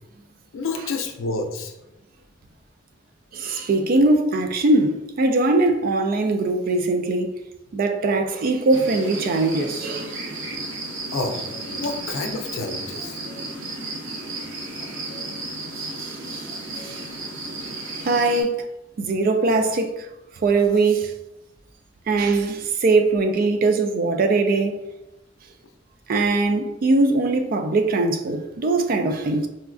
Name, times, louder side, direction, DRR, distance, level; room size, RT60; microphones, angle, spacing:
voice 1, 0.5-1.8 11.1-13.2, left 3 dB, 85° left, 0.5 m, -29 dB
voice 2, 3.3-7.4 7.7-10.2 16.0-16.5 16.8-17.0 17.9-18.6 19.0-20.1 20.4-21.1 22.1-24.8 26.1-29.5, right 3 dB, 45° right, 0.3 m, -21 dB
sound 1, 8.7-18.4, right 2 dB, 75° right, 0.7 m, -33 dB
4.2 x 2.4 x 2.3 m
head